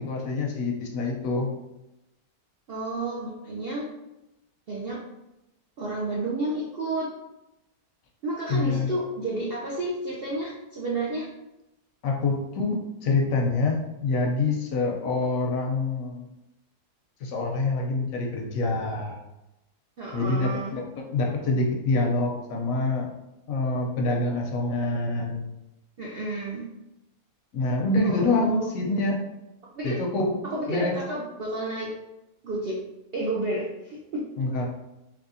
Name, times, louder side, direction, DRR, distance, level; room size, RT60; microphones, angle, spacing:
voice 1, 0.0-1.5 8.5-8.9 12.0-16.3 17.2-19.2 20.1-23.1 23.5-25.5 27.5-29.2 29.8-30.4 30.7-31.0 34.4-34.7, left 3 dB, 70° left, 1 dB, 0.9 m, -26 dB
voice 2, 2.7-3.9 4.7-5.0 5.8-7.1 8.2-11.3 20.0-20.7 26.0-26.6 28.0-28.7 29.8-30.0 30.4-31.9 32.4-32.8 33.1-34.3, right 2 dB, 70° right, -4 dB, 0.5 m, -31 dB
3.4 x 3.0 x 2.5 m, 0.93 s
omnidirectional pair, 1.6 m